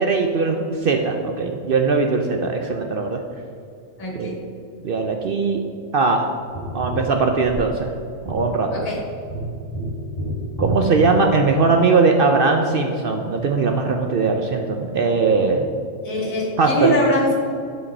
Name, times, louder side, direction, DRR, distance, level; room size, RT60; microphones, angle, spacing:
voice 1, 0.0-3.2 4.1-4.3 4.8-5.6 5.9-6.2 6.7-7.9 8.3-8.9 10.6-15.7 16.6-16.9, right 4 dB, 60° right, 3 dB, 0.6 m, -20 dB
voice 2, 4.0-4.4 8.7-9.0 16.0-17.3, equal, 75° left, -4 dB, 2.4 m, -22 dB
Tap, 6.6-11.8 14.4-14.5, equal, 15° left, 1.9 m, -30 dB
9.7 x 5.2 x 4.2 m, 2.5 s
omnidirectional pair, 1.4 m